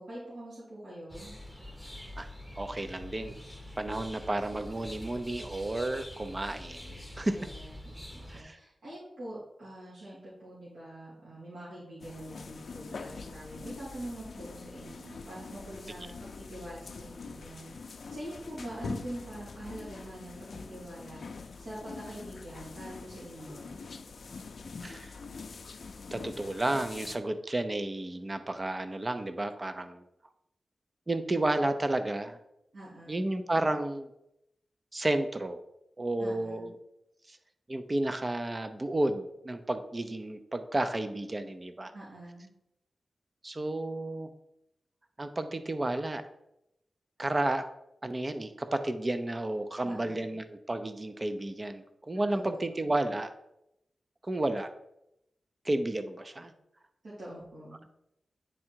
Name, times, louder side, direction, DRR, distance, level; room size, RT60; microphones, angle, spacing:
voice 1, 0.0-1.3 7.3-23.7 32.7-33.3 36.2-36.7 41.9-42.5 49.8-50.3 52.3-52.9 57.0-57.8, right 1 dB, 80° right, -10 dB, 2.8 m, -44 dB
sound 1, 1.1-8.4, left 1 dB, 5° right, 0.9 m, -45 dB
voice 2, 2.6-3.3 3.8-7.5 8.3-8.6 24.8-25.1 26.1-30.0 31.1-32.4 33.1-34.1 34.9-35.6 36.0-36.8 37.3-37.4 37.7-41.9 43.4-44.3 45.2-46.2 47.2-47.7 48.0-53.3 54.2-54.7 55.6-56.5, right 1 dB, 25° right, 9 dB, 0.6 m, -32 dB
sound 2, 12.0-27.2, left 4 dB, 65° left, 0.5 m, -44 dB
9.9 x 3.7 x 4.5 m, 0.84 s
wide cardioid pair, 95°, 0 cm